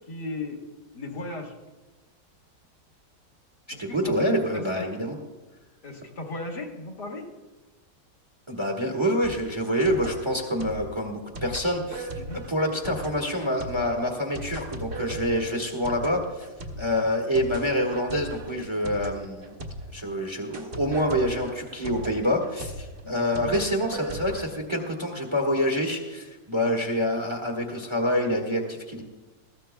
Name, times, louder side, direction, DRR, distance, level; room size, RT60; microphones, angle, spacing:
voice 1, 0.1-0.6 0.9-1.5 3.7-4.0 4.5-4.9 5.8-7.3 12.2-12.4 15.8-15.9 23.0-23.5, left 2 dB, 60° left, 0 dB, 2.2 m, -37 dB
voice 2, 3.8-5.2 8.5-12.1 12.3-16.4 16.8-19.6 19.9-29.0, equal, 15° right, 1 dB, 1.3 m, -26 dB
sound 1, 9.2-20.1 20.5-24.5, right 1 dB, 45° right, 1.7 m, -38 dB
20.0 x 15.0 x 2.3 m, 1.2 s
omnidirectional pair, 2.0 m